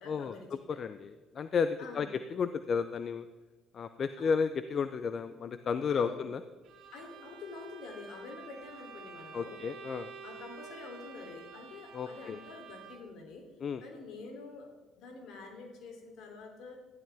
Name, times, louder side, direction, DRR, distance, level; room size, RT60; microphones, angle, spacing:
voice 1, 0.0-0.8 1.8-2.1 4.2-4.3 5.9-6.2 6.9-9.6 10.2-13.5 13.8-14.7 15.0-16.8, left 3 dB, 70° left, 3 dB, 3.0 m, -47 dB
voice 2, 0.7-3.3 3.7-6.4 9.3-10.1 11.9-12.4 13.6-13.8, left 6 dB, 50° left, 12 dB, 0.6 m, -33 dB
Bowed string instrument, 6.6-13.2, right 5 dB, 70° right, 2.6 m, -50 dB
14.0 x 11.5 x 3.5 m, 1.3 s
supercardioid pair, 75°, 0 cm